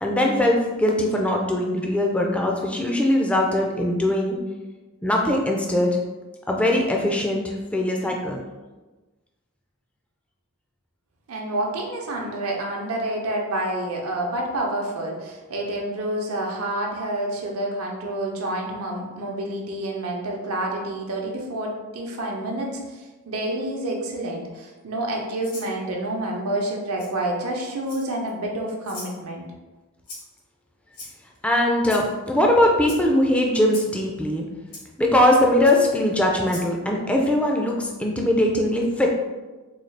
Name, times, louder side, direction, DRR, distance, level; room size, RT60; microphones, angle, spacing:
voice 1, 0.0-4.4 5.0-6.0 6.5-8.4 31.4-34.4 35.0-39.1, left 1 dB, 5° left, 0 dB, 0.3 m, -21 dB
voice 2, 11.3-29.4, right 1 dB, 85° right, 0 dB, 0.7 m, -28 dB
Rattle (instrument), 25.4-25.7 27.0-27.1 27.8-28.3 28.8-29.2 30.1-30.4 30.9-31.4 31.8-32.1 32.8-33.0 33.7-33.9 34.7-34.8 35.6-35.8 36.4-36.7, left 2 dB, 80° left, 1.2 m, -39 dB
3.9 x 2.3 x 3.2 m, 1.2 s
head